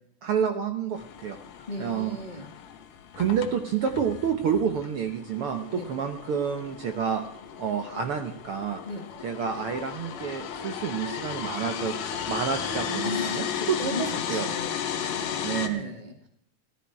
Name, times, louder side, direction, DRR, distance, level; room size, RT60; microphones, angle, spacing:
voice 1, 0.2-1.4 1.8-2.2 3.2-7.2 7.6-8.8 9.2-14.5 15.4-16.0, right 7 dB, 70° right, 6 dB, 1.3 m, -29 dB
sound 1, 1.0-15.7, left 8 dB, 80° left, 2.7 m, -35 dB
voice 2, 1.7-2.5 5.7-5.9 8.8-9.1 13.0-16.3, left 2 dB, 55° left, 3 dB, 0.4 m, -37 dB
17.5 x 13.0 x 4.7 m, 0.70 s
omnidirectional pair, 3.7 m